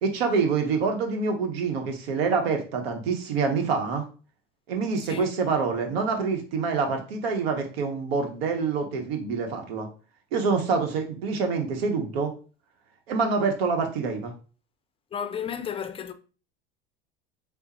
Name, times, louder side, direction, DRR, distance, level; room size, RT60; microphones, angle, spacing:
voice 1, 0.0-4.0 4.7-9.9 10.3-12.3 13.1-14.3, right 5 dB, 80° right, 0.9 m, -26 dB
voice 2, 5.0-5.3 15.1-16.1, left 8 dB, 20° left, 0.4 m, -33 dB
3.5 x 2.0 x 4.1 m
hypercardioid pair, 85°, 30 cm